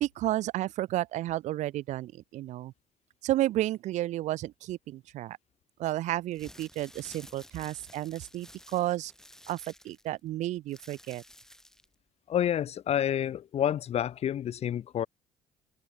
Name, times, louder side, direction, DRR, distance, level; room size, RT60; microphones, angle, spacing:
voice 1, 0.0-2.7 3.2-5.4 5.8-9.1 9.5-11.2, right 15 dB, 70° right, 0.7 m, -32 dB
sound 1, 6.2-11.9, left 1 dB, 5° left, 4.5 m, -53 dB
voice 2, 12.3-15.1, left 10 dB, 55° left, 1.1 m, -29 dB
supercardioid pair, 75°, 13 cm